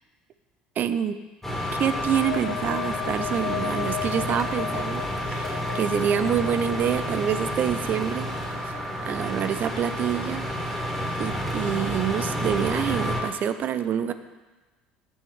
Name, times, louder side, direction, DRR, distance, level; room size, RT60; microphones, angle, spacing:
voice 1, 0.8-1.2 1.7-5.0 5.3-8.3 8.6-8.8 9.0-10.4 11.2-14.1, right 9 dB, 45° right, 11 dB, 0.4 m, -26 dB
sound 1, 1.4-13.2, equal, 5° left, 1.6 m, -30 dB
sound 2, 1.9-9.4, left 13 dB, 90° left, 0.7 m, -37 dB
6.9 x 3.6 x 6.3 m, 1.2 s
hypercardioid pair, 65°, 4 cm